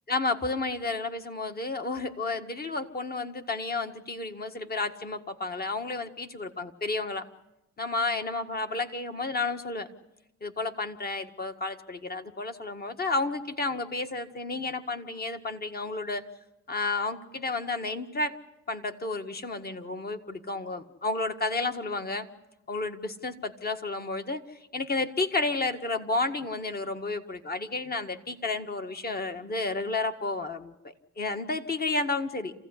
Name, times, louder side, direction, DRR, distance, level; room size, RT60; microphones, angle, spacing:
voice 1, 0.1-7.3 7.8-9.9 10.4-16.2 16.7-18.3 18.7-22.3 22.7-24.4 24.7-30.7 31.2-32.5, left 3 dB, 30° left, 7 dB, 1.8 m, -31 dB
28.0 x 16.0 x 9.9 m, 0.91 s
cardioid pair, 90°, 30 cm